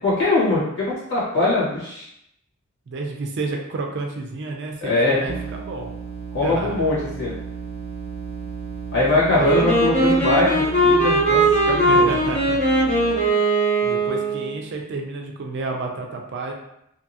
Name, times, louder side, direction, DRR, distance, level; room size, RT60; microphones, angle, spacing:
voice 1, 0.0-2.1 4.8-5.2 6.3-7.3 8.9-12.1, left 2 dB, 55° left, -8 dB, 1.3 m, -22 dB
voice 2, 2.9-5.9 6.4-6.8 9.3-9.6 11.9-12.6 13.8-16.5, right 3 dB, 55° right, 2 dB, 0.4 m, -30 dB
sound 1, 5.3-13.3, right 5 dB, 90° left, 1.5 m, -34 dB
Wind instrument woodwind instrument, 9.3-14.5, right 1 dB, 35° left, 0.7 m, -19 dB
2.7 x 2.3 x 2.7 m, 0.79 s
head